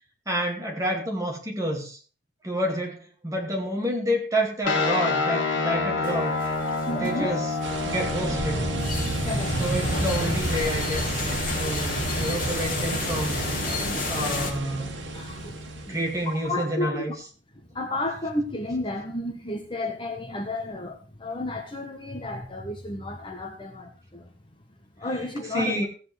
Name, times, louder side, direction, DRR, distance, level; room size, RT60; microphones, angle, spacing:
voice 1, 0.3-2.0 2.4-6.4 6.9-7.5 7.9-8.6 9.6-11.2 11.5-13.4 14.1-14.9 15.9-17.1 25.5-25.9, equal, 15° right, 1 dB, 2.4 m, -28 dB
sound 1, 4.6-15.8, left 3 dB, 75° left, 2.3 m, -30 dB
sound 2, 6.0-14.5, left 3 dB, 45° left, 2.7 m, -33 dB
voice 2, 6.9-7.4 9.2-9.6 13.7-14.0 15.1-17.1 17.7-24.3 25.0-25.9, left 1 dB, 25° left, 3 dB, 1.4 m, -32 dB
sound 3, 7.6-16.3, right 2 dB, 75° right, 1.9 m, -31 dB
15.5 x 8.8 x 3.4 m, 0.37 s
head